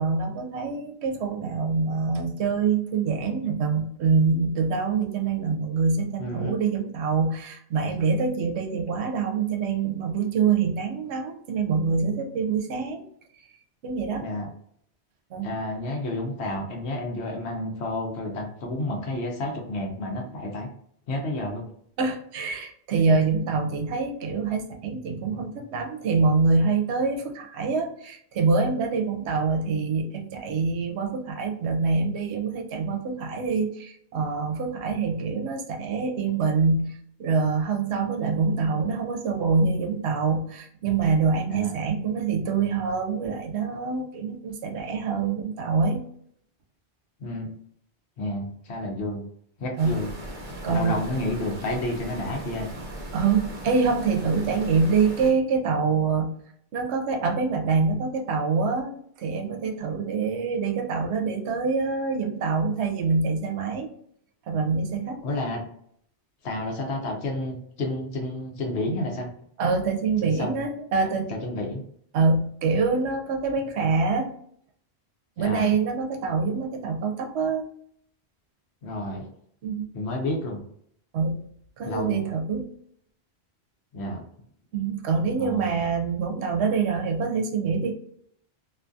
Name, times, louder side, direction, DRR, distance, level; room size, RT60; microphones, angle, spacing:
voice 1, 0.0-13.0 13.8-14.3 15.3-15.5 22.0-46.0 49.8-49.9 50.6-51.0 53.1-56.3 56.7-63.9 64.5-65.2 69.6-71.3 72.1-74.3 75.4-77.7 79.6-79.9 81.1-81.5 81.8-82.7 84.7-87.9, right 4 dB, 80° right, 4 dB, 0.8 m, -25 dB
voice 2, 6.2-6.6 14.2-14.5 15.4-20.7 21.1-21.6 41.5-41.7 47.2-47.5 48.2-49.2 49.6-50.1 50.7-52.7 65.2-65.6 66.4-69.3 70.2-70.6 71.3-71.8 75.4-75.8 78.8-79.2 79.9-80.6 81.8-82.2 83.9-84.2 85.4-85.8, left 1 dB, 80° left, 1 dB, 0.9 m, -30 dB
sound 1, 49.8-55.3, right 1 dB, 40° right, 0.8 m, -38 dB
2.5 x 2.3 x 2.5 m, 0.66 s
omnidirectional pair, 1.1 m